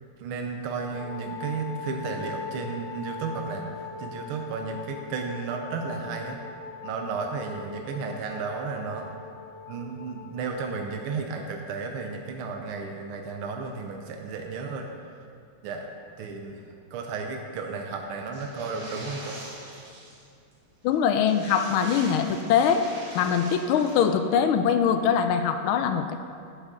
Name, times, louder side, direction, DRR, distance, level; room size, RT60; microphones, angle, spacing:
voice 1, 0.2-3.7 4.0-6.4 6.8-9.2 9.7-14.8 15.6-15.9 16.2-16.6 16.9-19.4, right 4 dB, 85° right, 3 dB, 1.6 m, -33 dB
Wind instrument woodwind instrument, 0.9-10.9, left 5 dB, 55° left, 1.4 m, -41 dB
sound 1, 18.3-20.3 20.5-20.6 20.9-21.0 21.2-24.0, right 1 dB, 50° right, 2.3 m, -42 dB
voice 2, 20.8-22.8 23.1-26.2, left 7 dB, 80° left, 8 dB, 1.4 m, -23 dB
10.0 x 8.1 x 3.7 m, 2.3 s
omnidirectional pair, 2.4 m